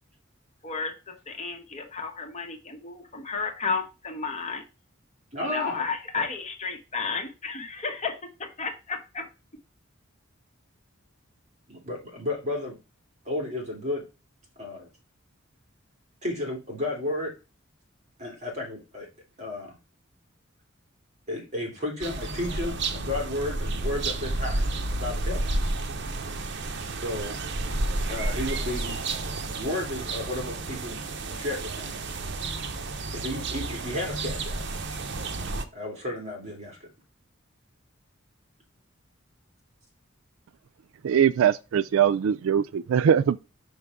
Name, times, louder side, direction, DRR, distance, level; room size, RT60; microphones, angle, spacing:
voice 1, 0.6-4.6 5.4-9.3, left 4 dB, 35° left, 1.3 m, -32 dB
voice 2, 5.3-5.8 11.7-12.8 13.2-14.0 14.6-14.9 16.2-17.3 18.2-19.1 19.4-19.8 21.3-25.5 27.0-27.4 27.7-27.8 28.1-29.0 29.6-31.0 31.3-31.9 33.1-34.6 35.7-36.8, left 1 dB, 35° right, 3.0 m, -33 dB
sound 1, 22.0-35.7, right 2 dB, 60° right, 0.8 m, -31 dB
voice 3, 41.0-43.4, right 8 dB, 80° right, 0.3 m, -21 dB
5.8 x 5.5 x 3.6 m
head